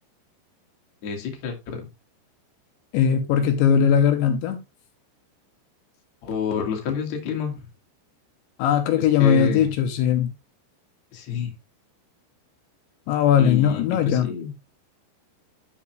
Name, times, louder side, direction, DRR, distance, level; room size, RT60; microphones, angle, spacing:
voice 1, 1.0-1.9 6.2-7.6 9.0-9.7 11.1-11.5 13.4-14.5, left 6 dB, 50° left, 2.4 m, -29 dB
voice 2, 2.9-4.6 8.6-10.3 13.1-14.3, left 8 dB, 75° left, 3.2 m, -19 dB
11.0 x 5.9 x 3.2 m
omnidirectional pair, 5.4 m